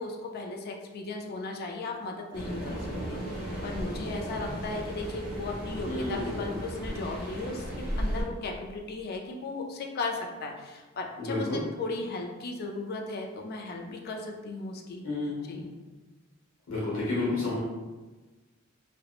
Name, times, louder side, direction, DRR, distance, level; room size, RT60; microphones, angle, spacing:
voice 1, 0.0-7.7 8.0-15.0 15.5-15.7, left 3 dB, 50° left, 2 dB, 0.3 m, -36 dB
sound 1, 2.3-8.2, equal, 25° left, 0.8 m, -35 dB
voice 2, 5.8-6.4 11.2-11.6 15.0-15.6 16.7-17.6, left 2 dB, 70° left, -7 dB, 0.9 m, -31 dB
2.9 x 2.1 x 2.4 m, 1.2 s
head